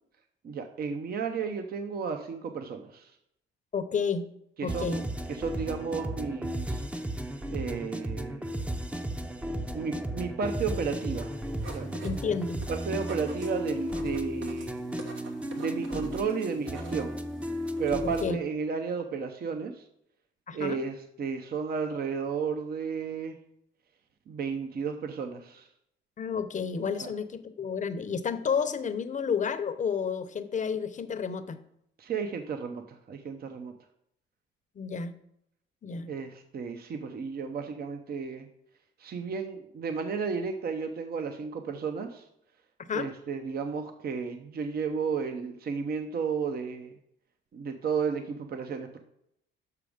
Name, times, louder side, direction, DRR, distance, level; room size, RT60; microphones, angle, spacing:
voice 1, 0.4-3.1 4.6-5.0 5.3-6.8 7.5-8.6 9.7-11.4 11.7-12.0 12.7-14.8 15.5-17.2 17.8-19.8 20.5-23.4 24.3-25.7 27.0-27.1 32.0-33.7 36.1-38.5 39.0-42.3 42.9-46.9 47.5-49.0, right 5 dB, 50° right, 6 dB, 0.7 m, -33 dB
voice 2, 3.7-4.2 4.6-5.0 12.0-12.6 18.2-18.4 20.5-20.8 26.2-31.6 34.8-35.1 35.8-36.1 42.9-43.1, left 6 dB, 40° left, 10 dB, 0.7 m, -31 dB
sound 1, 4.7-18.4, equal, 5° right, 0.6 m, -34 dB
sound 2, 11.3-18.3, right 3 dB, 75° right, 1.2 m, -47 dB
6.7 x 6.0 x 5.0 m, 0.76 s
cardioid pair, 90°, 20 cm